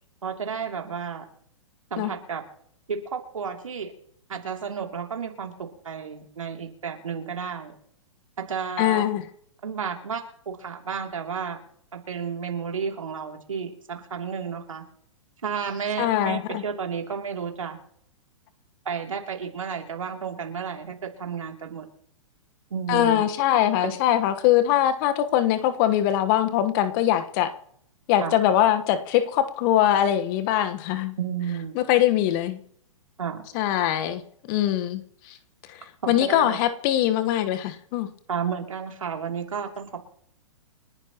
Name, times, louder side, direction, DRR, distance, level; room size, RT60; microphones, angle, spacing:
voice 1, 0.2-1.3 1.9-2.4 2.9-3.9 4.3-7.7 8.4-9.0 9.6-11.6 11.9-14.8 15.4-17.8 18.8-21.9 22.7-23.2 28.2-28.3 31.2-31.7 33.2-33.4 36.0-36.6 38.3-40.1, right 6 dB, 75° right, 2.9 m, -32 dB
voice 2, 8.8-9.2 16.0-16.6 22.9-27.5 28.1-31.2 31.7-32.6 33.5-35.3 35.7-35.8 36.1-38.1, left 12 dB, 40° left, 1.3 m, -22 dB
29.5 x 10.5 x 3.0 m
figure-of-eight pair, 110°, 17 cm